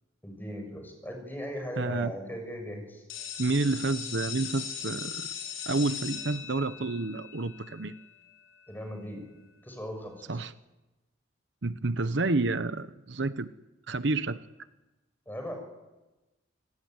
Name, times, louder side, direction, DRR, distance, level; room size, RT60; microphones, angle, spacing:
voice 1, 0.2-3.0 8.7-9.3 9.6-10.4 15.2-15.6, equal, 10° left, 3 dB, 6.8 m, -38 dB
voice 2, 1.8-2.1 3.4-5.3 5.7-7.9 10.3-10.5 11.6-13.5 13.9-14.4, right 3 dB, 65° right, 12 dB, 0.9 m, -29 dB
sound 1, 3.1-8.7, left 8 dB, 85° left, 5.6 m, -39 dB
28.0 x 18.5 x 9.5 m, 1.1 s
head